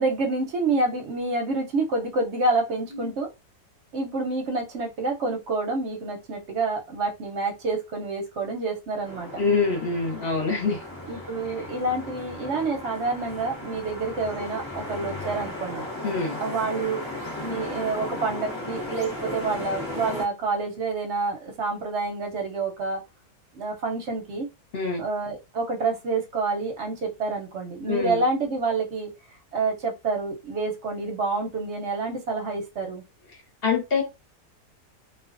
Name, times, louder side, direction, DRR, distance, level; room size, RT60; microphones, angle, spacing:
voice 1, 0.0-3.3 3.9-9.4 11.1-15.8 16.4-17.0 17.4-23.0 23.5-24.5 25.0-29.1 29.5-33.0, right 3 dB, 60° right, 0.8 m, -28 dB
sound 1, 9.1-20.2, left 2 dB, 25° left, 0.6 m, -36 dB
voice 2, 9.4-10.8 16.0-16.4 24.7-25.0 27.9-28.2 33.6-34.0, left 4 dB, 45° left, 0.9 m, -25 dB
2.4 x 2.3 x 2.4 m
omnidirectional pair, 1.6 m